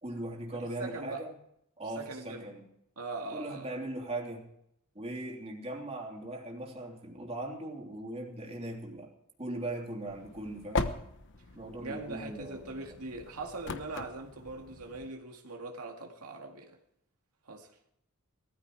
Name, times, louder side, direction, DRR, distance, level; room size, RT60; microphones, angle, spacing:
voice 1, 0.0-1.3 1.8-2.6 3.3-4.5 4.9-9.1 9.4-10.9 11.5-12.9, right 1 dB, 30° right, 3.2 m, -39 dB
voice 2, 0.8-1.2 2.0-2.5 3.0-3.7 11.8-16.8 17.5-17.7, right 3 dB, 85° right, 2.1 m, -41 dB
sound 1, 10.1-15.1, left 3 dB, 55° left, 1.1 m, -39 dB
19.0 x 14.0 x 4.7 m
head